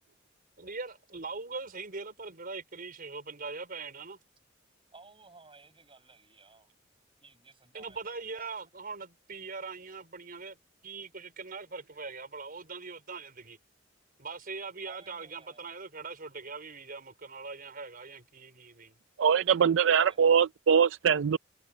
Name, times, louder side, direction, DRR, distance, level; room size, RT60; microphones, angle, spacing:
voice 1, 0.6-4.2 7.7-10.6 10.8-13.6 14.2-18.9, right 4 dB, 50° right, 4.6 m, -41 dB
voice 2, 4.9-6.7 7.2-8.8 14.9-15.7 19.5-20.4, right 3 dB, 30° right, 7.0 m, -57 dB
voice 3, 19.2-21.4, right 7 dB, 70° right, 0.4 m, -23 dB
head